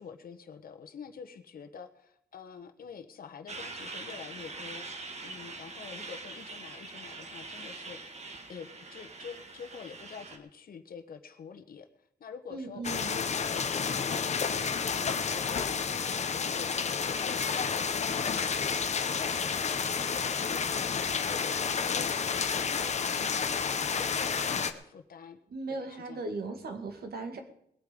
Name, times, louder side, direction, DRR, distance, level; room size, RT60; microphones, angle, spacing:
voice 1, 0.0-18.7 19.2-25.4 25.7-26.2, left 6 dB, 60° left, 7 dB, 1.3 m, -47 dB
Truck, 3.5-10.4, right 3 dB, 40° right, 1.7 m, -43 dB
voice 2, 12.5-13.1 25.5-27.4, right 3 dB, 65° right, 6 dB, 2.2 m, -37 dB
sound 1, 12.8-24.7, left 6 dB, 40° left, 0.8 m, -30 dB
20.5 x 8.3 x 5.3 m, 0.70 s
wide cardioid pair, 135°, 17 cm